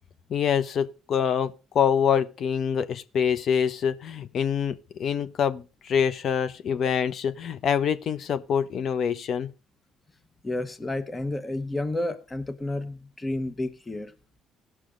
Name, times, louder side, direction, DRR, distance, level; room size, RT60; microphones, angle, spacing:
voice 1, 0.3-9.5, left 7 dB, 55° left, 0.9 m, -25 dB
voice 2, 10.4-14.1, left 2 dB, 20° left, 1.2 m, -31 dB
17.5 x 6.3 x 3.9 m
supercardioid pair, 65°, 0 cm